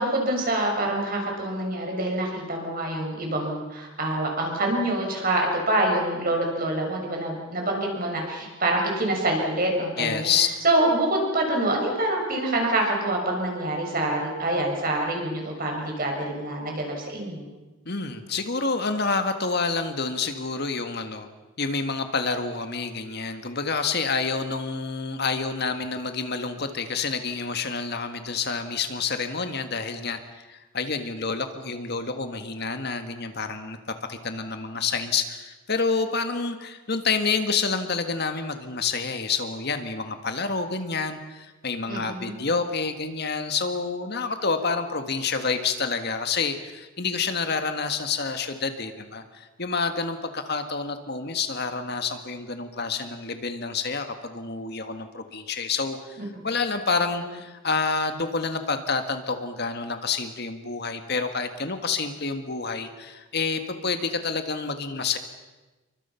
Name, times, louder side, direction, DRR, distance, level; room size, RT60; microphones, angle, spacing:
voice 1, 0.0-10.3 10.6-17.4 41.9-42.3 56.2-56.4, right 1 dB, 40° right, 1 dB, 6.5 m, -26 dB
voice 2, 10.0-10.6 17.9-21.3 21.6-65.2, left 4 dB, 50° left, 7 dB, 1.7 m, -28 dB
29.0 x 24.0 x 5.8 m, 1.2 s
head